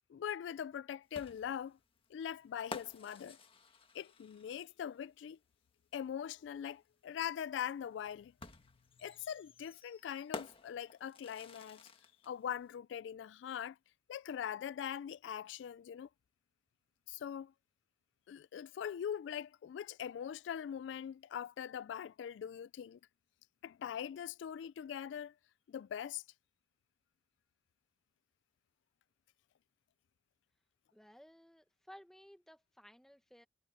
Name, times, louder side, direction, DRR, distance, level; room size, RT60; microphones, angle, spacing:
voice 1, 0.1-1.8 2.1-3.4 3.9-5.4 5.9-8.3 9.0-11.9 12.2-13.8 14.1-16.1 17.1-17.5 18.3-23.0 23.6-25.3 25.7-26.2, left 9 dB, 80° left, 0.3 m, -42 dB
sound 1, 1.1-4.8 6.3-6.4 8.4-12.3, left 3 dB, 30° left, 1.6 m, -51 dB
voice 2, 30.9-33.5, equal, 5° left, 1.2 m, -58 dB
head